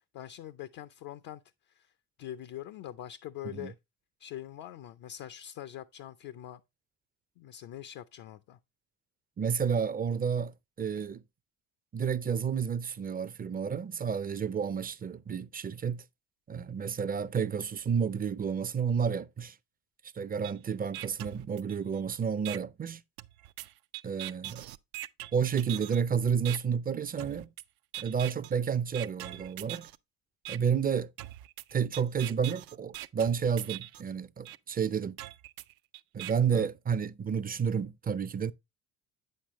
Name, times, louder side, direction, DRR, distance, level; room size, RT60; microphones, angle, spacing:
voice 1, 0.1-1.4 1.8-1.9 2.2-3.7 4.2-6.6 7.4-8.6 36.5-36.7, left 12 dB, 65° left, 0.6 m, -43 dB
voice 2, 9.4-10.5 10.8-11.2 11.9-16.0 16.5-19.5 20.2-23.0 24.0-24.7 25.3-27.5 28.0-29.9 30.5-31.1 31.7-35.2 36.1-38.5, right 7 dB, 25° right, 0.5 m, -30 dB
sound 1, 20.4-20.5 20.9-22.0 22.5-22.6 23.2-26.0 26.5-26.6 27.2-27.6 27.9-28.5 28.9-30.0 30.5-30.6 31.2-34.0 34.5-34.6 35.2-36.3, right 15 dB, 70° right, 0.5 m, -42 dB
8.6 x 6.6 x 3.0 m
supercardioid pair, 70°, 37 cm